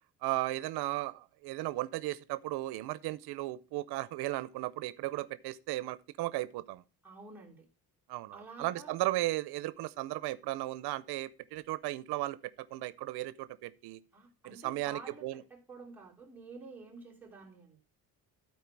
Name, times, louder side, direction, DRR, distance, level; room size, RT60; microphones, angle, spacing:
voice 1, 0.2-6.8 8.1-12.4 12.7-14.0 14.4-15.4, right 17 dB, 90° right, 0.6 m, -35 dB
voice 2, 7.0-7.6 8.3-9.0 14.1-17.8, right 3 dB, 5° right, 3.0 m, -50 dB
12.5 x 4.5 x 4.5 m
cardioid pair, 145°, 37 cm